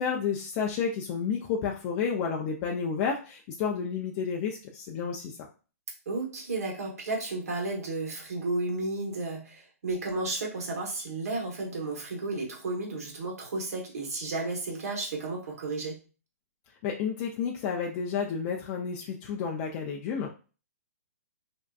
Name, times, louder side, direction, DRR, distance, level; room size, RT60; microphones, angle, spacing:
voice 1, 0.0-5.4 16.8-20.3, left 6 dB, 35° left, -1 dB, 0.4 m, -31 dB
voice 2, 6.1-16.0, right 2 dB, 75° right, -1 dB, 1.0 m, -33 dB
2.6 x 2.2 x 2.3 m, 0.35 s
hypercardioid pair, 135°, 8 cm